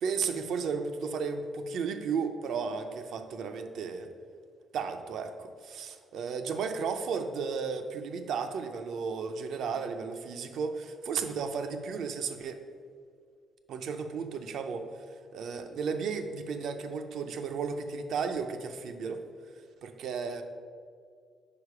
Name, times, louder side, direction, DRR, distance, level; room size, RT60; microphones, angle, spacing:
voice 1, 0.0-4.1 4.7-12.6 13.7-14.9 15.3-19.2 19.8-20.4, right 5 dB, 75° right, 7 dB, 0.5 m, -34 dB
4.9 x 4.8 x 4.7 m, 2.1 s
cardioid pair, 90°, 0 cm